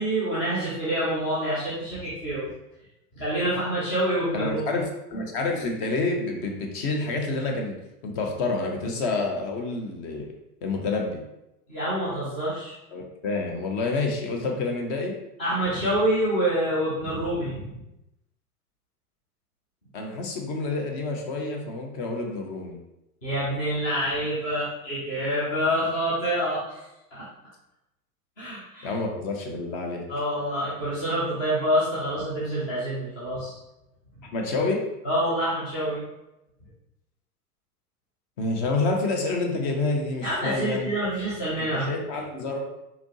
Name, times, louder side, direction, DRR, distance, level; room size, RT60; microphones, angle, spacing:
voice 1, 0.0-2.5 3.2-4.7 11.7-12.8 15.4-17.7 23.2-26.8 27.1-27.2 28.4-28.9 30.1-33.6 35.0-36.0 40.2-41.9, equal, 10° left, -9 dB, 0.3 m, -27 dB
voice 2, 4.3-7.8 8.0-10.3 10.6-11.2 12.9-15.1 19.9-22.8 28.8-30.0 34.2-34.8 38.4-41.3 41.7-42.6, left 3 dB, 35° left, 2 dB, 0.8 m, -28 dB
4.2 x 2.8 x 2.9 m, 0.91 s
figure-of-eight pair, 95°, 47 cm